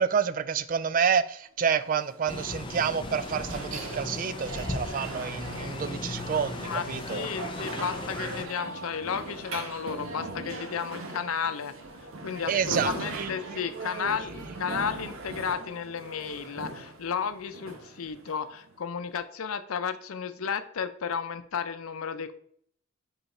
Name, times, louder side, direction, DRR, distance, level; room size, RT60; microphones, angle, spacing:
voice 1, 0.0-7.3 12.5-14.2, right 7 dB, 40° right, 0.3 m, -29 dB
sound 1, 1.7-18.7, right 2 dB, 75° right, 1.0 m, -40 dB
sound 2, 2.3-8.5, left 2 dB, 25° left, 0.5 m, -37 dB
voice 2, 6.6-11.7 12.2-22.3, left 6 dB, 85° left, 0.6 m, -33 dB
5.6 x 4.0 x 4.2 m
head